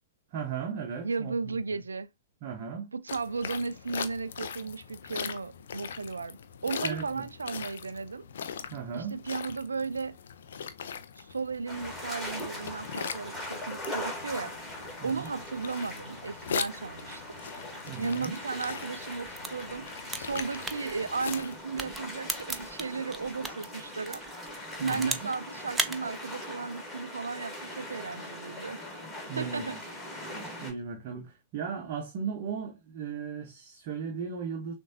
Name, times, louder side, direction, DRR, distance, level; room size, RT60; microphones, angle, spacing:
voice 1, 0.3-1.8 2.4-2.9 6.8-7.3 8.7-9.2 15.0-15.3 17.9-18.3 24.8-25.1 29.3-29.8 30.3-34.7, right 6 dB, 40° right, 0.9 m, -37 dB
voice 2, 1.0-2.1 2.9-8.2 8.9-10.2 11.2-14.7 15.0-17.2 18.0-19.9 20.2-24.2 24.8-28.8 29.4-29.8, right 4 dB, 75° right, 0.4 m, -35 dB
sound 1, 3.1-21.6, left 7 dB, 60° left, 0.5 m, -41 dB
sound 2, 11.7-30.7, left 1 dB, 10° left, 2.2 m, -41 dB
sound 3, 19.3-23.6 24.1-25.4 25.7-26.0, right 4 dB, 10° right, 0.5 m, -35 dB
6.3 x 2.6 x 2.7 m
figure-of-eight pair, 110°, 0 cm